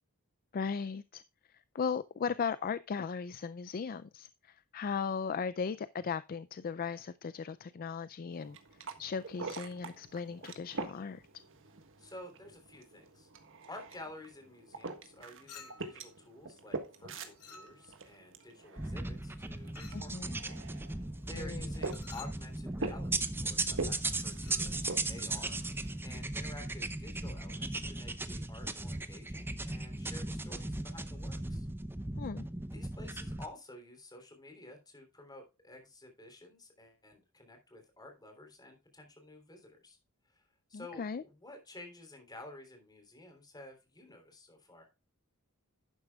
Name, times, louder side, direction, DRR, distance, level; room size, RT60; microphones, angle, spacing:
voice 1, 0.5-1.2 1.5-8.6 9.0-11.2 19.9-20.4 21.3-21.7 32.2-32.4 40.7-41.2, left 6 dB, 40° left, 0.4 m, -37 dB
sound 1, 8.3-26.1, right 3 dB, 60° right, 1.5 m, -45 dB
voice 2, 12.0-13.3 13.7-20.5 20.9-25.6 26.0-31.7 32.7-40.0 40.3-44.9, left 2 dB, 20° left, 3.3 m, -51 dB
Chink clink, 15.5-16.0 17.4-18.1 19.8-20.1 21.8-22.4 24.3-24.7, left 6 dB, 80° left, 2.2 m, -52 dB
sound 2, 18.8-33.5, right 2 dB, 10° right, 0.6 m, -37 dB
11.5 x 9.5 x 2.3 m
head